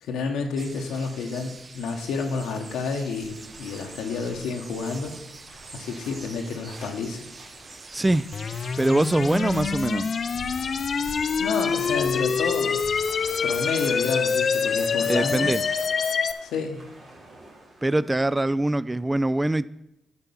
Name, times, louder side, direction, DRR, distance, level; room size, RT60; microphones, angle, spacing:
voice 1, 0.0-5.2 5.7-7.3 11.4-12.8 13.4-15.6 16.4-16.8, left 4 dB, 80° left, 1.0 m, -30 dB
sound 1, 0.6-15.9, right 3 dB, 45° right, 0.8 m, -45 dB
sound 2, 3.1-18.1, right 1 dB, 65° right, 2.5 m, -47 dB
voice 2, 7.9-8.3 8.8-10.1 15.1-15.6 17.8-19.7, right 1 dB, 20° right, 0.3 m, -23 dB
sound 3, 8.3-16.3, left 6 dB, 60° left, 0.5 m, -26 dB
9.6 x 4.6 x 6.9 m
hypercardioid pair, 45°, 0 cm